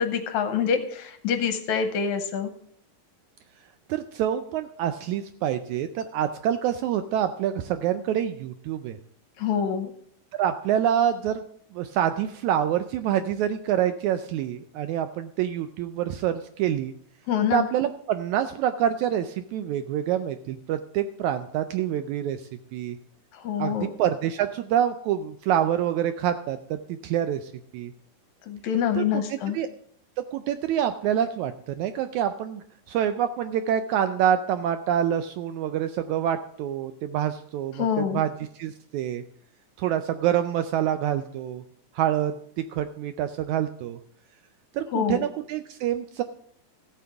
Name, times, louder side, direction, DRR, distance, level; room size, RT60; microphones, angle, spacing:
voice 1, 0.0-2.5 9.4-9.9 17.3-17.7 23.3-23.9 28.5-29.6 37.8-38.2 44.9-45.2, left 7 dB, 75° left, 7 dB, 1.9 m, -26 dB
voice 2, 3.9-9.0 10.4-11.4 11.7-16.9 17.5-23.0 23.6-27.9 28.9-29.0 29.3-29.7 30.3-38.3 38.6-39.2 39.8-41.6 42.0-44.0 44.7-46.2, right 10 dB, 80° right, 9 dB, 1.7 m, -26 dB
15.0 x 8.5 x 3.4 m, 0.67 s
omnidirectional pair, 3.8 m